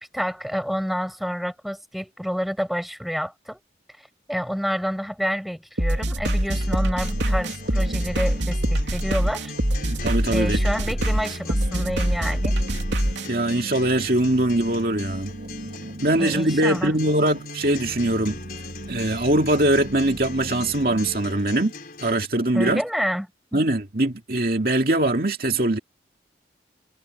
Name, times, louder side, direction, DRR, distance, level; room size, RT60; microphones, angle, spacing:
voice 1, 0.1-3.6 4.0-9.5 10.3-12.6 16.1-16.9 22.5-23.6, equal, ahead, 5.5 m, -28 dB
sound 1, 5.8-13.3, right 1 dB, 85° right, 3.0 m, -24 dB
Acoustic guitar, 6.3-22.3, left 5 dB, 50° left, 6.1 m, -41 dB
sound 2, 6.5-21.2, right 1 dB, 70° right, 2.6 m, -38 dB
voice 2, 9.9-10.6 13.3-15.3 16.0-18.4 18.9-21.7 22.0-22.8 23.5-25.8, right 1 dB, 55° right, 2.3 m, -22 dB
head